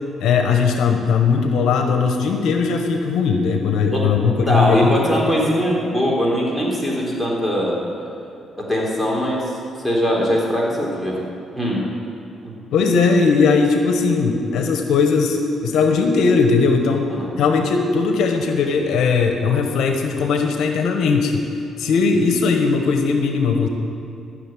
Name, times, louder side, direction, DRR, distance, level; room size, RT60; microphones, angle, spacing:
voice 1, 0.2-5.1 12.7-21.4 21.8-23.7, left 5 dB, 80° left, 5 dB, 1.2 m, -18 dB
voice 2, 4.5-7.8 8.6-9.6 9.8-11.2 11.6-11.9 12.4-12.5 17.1-17.4, equal, ahead, -3 dB, 3.8 m, -21 dB
14.5 x 6.6 x 9.3 m, 2.7 s
cardioid pair, 90°, 0 cm